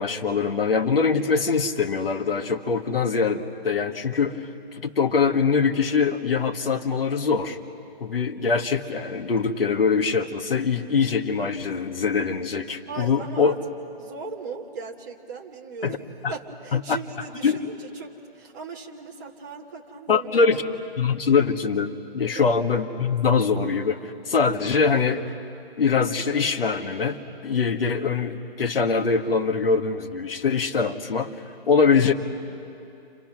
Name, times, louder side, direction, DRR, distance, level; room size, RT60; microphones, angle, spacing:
voice 1, 0.0-7.6 8.0-13.5 15.8-16.0 16.2-16.3 16.7-17.0 17.4-17.6 20.1-20.6 21.0-25.3 25.8-31.3 31.7-32.1, left 5 dB, 65° left, 5 dB, 1.8 m, -23 dB
voice 2, 12.9-13.6 14.0-16.0 16.3-20.5 22.2-22.5, right 4 dB, 20° right, -2 dB, 1.5 m, -38 dB
30.0 x 27.0 x 6.1 m, 2.7 s
hypercardioid pair, 175°, 31 cm